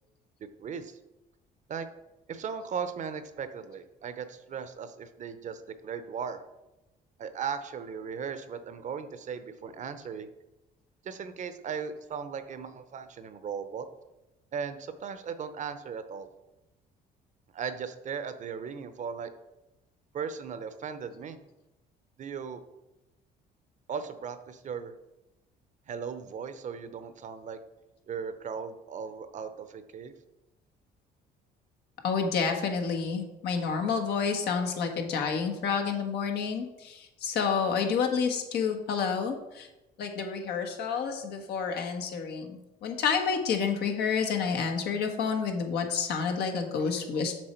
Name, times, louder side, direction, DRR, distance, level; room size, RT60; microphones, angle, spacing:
voice 1, 0.6-1.0 1.7-1.9 2.3-6.4 7.2-10.3 11.0-13.9 14.5-16.3 17.5-19.3 20.1-21.4 22.2-22.6 23.9-24.9 25.9-27.6 28.1-30.1, right 6 dB, 45° right, 10 dB, 0.8 m, -37 dB
voice 2, 32.0-39.7 40.0-47.4, left 6 dB, 75° left, 4 dB, 1.4 m, -29 dB
7.6 x 6.1 x 4.5 m, 0.97 s
cardioid pair, 110°, 17 cm